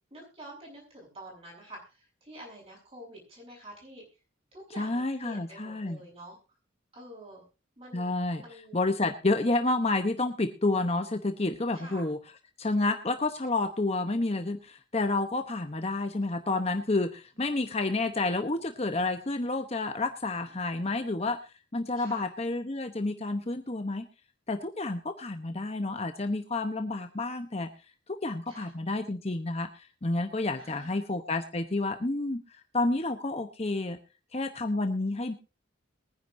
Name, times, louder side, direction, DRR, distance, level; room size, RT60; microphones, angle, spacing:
voice 1, 0.1-4.0 4.5-6.4 6.9-7.4 7.8-8.1 8.4-8.8 11.7-12.1 22.0-22.3 28.5-28.7 30.6-31.0, right 1 dB, 30° right, -2 dB, 7.3 m, -48 dB
voice 2, 4.8-6.0 7.9-8.4 8.7-12.2 12.6-21.4 21.7-24.1 24.5-27.7 28.1-32.4 32.7-34.0 34.3-35.3, left 2 dB, 30° left, 7 dB, 0.8 m, -30 dB
22.5 x 10.0 x 2.6 m, 0.31 s
head